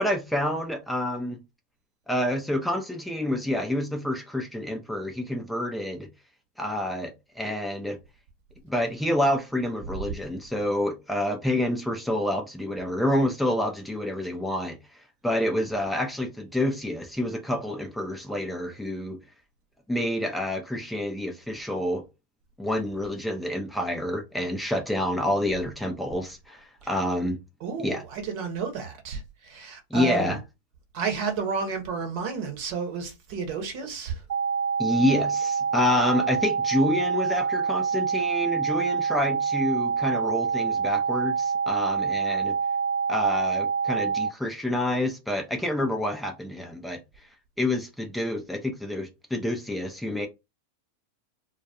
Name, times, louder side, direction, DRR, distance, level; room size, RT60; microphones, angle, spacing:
voice 1, 0.0-1.4 2.1-6.1 6.6-8.0 8.6-19.2 19.9-22.1 22.6-27.4 27.8-28.0 29.9-30.4 34.8-42.5 43.1-47.0 47.6-50.3, left 1 dB, 5° left, 0.4 m, -28 dB
voice 2, 27.6-30.4 30.9-34.2, right 5 dB, 50° right, 0.9 m, -31 dB
sound 1, 34.3-44.3, right 6 dB, 65° right, 0.3 m, -26 dB
2.2 x 2.2 x 2.7 m
figure-of-eight pair, 90°, 0 cm